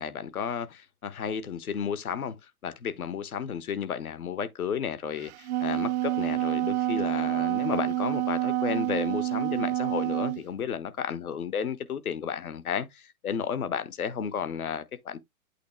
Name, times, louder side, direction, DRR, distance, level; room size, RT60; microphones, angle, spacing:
voice 1, 0.0-2.4 2.6-15.2, left 7 dB, 75° left, 1.3 m, -32 dB
Wind instrument woodwind instrument, 5.2-10.4, right 15 dB, 50° right, 0.4 m, -28 dB
8.4 x 3.0 x 4.5 m
hypercardioid pair, 115°, 44 cm